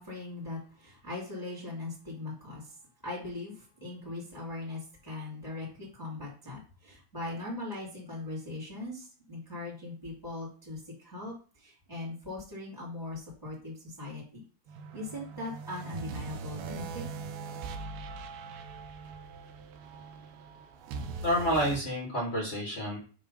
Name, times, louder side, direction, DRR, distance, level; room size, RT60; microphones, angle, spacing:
voice 1, 0.0-2.6 3.0-11.3 11.6-14.4 14.9-17.0, left 2 dB, 10° left, -4 dB, 1.3 m, -40 dB
sound 1, 14.7-21.8, right 5 dB, 80° right, 2.4 m, -41 dB
voice 2, 21.2-23.0, equal, 55° left, -3 dB, 0.6 m, -29 dB
6.6 x 2.9 x 5.3 m, 0.38 s
omnidirectional pair, 4.8 m